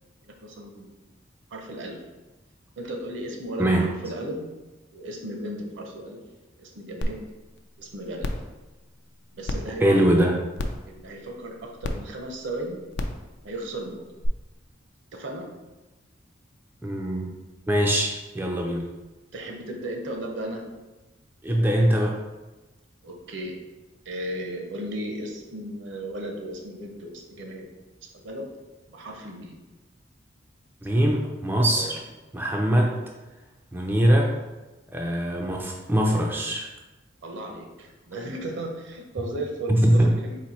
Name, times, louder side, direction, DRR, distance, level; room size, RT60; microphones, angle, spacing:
voice 1, 0.2-1.1 1.5-2.0 2.8-4.5 4.9-6.2 6.6-7.2 7.8-8.3 9.3-10.1 10.9-12.8 13.4-14.0 15.1-15.5 19.3-20.6 23.0-23.6 24.1-27.7 28.2-28.5 28.9-29.6 31.7-32.0 37.2-40.4, right 1 dB, 65° right, 2 dB, 0.7 m, -35 dB
sound 1, 7.0-7.1 7.6-7.7 8.2-8.5 9.5-9.6 10.6-10.8 11.8-11.9 12.9-13.2 14.2-14.3, left 1 dB, 60° left, 0.4 m, -28 dB
voice 2, 9.8-10.4 16.8-17.3 17.7-18.9 21.4-22.2 30.8-32.0 32.3-33.0 33.7-34.3 34.9-36.7 39.7-40.1, right 1 dB, 10° right, 0 dB, 0.3 m, -22 dB
4.2 x 2.6 x 4.1 m, 1.1 s
head